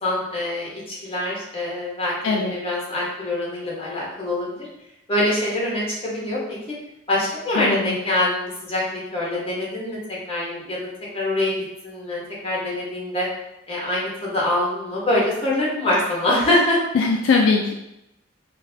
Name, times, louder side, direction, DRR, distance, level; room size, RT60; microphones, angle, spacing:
voice 1, 0.0-4.7 5.1-6.6 7.1-10.0 10.3-13.3 13.7-16.8, left 1 dB, 30° left, -5 dB, 0.9 m, -24 dB
voice 2, 7.6-8.0 16.9-17.7, left 4 dB, 70° left, 1 dB, 0.3 m, -20 dB
3.8 x 2.2 x 2.7 m, 0.86 s
head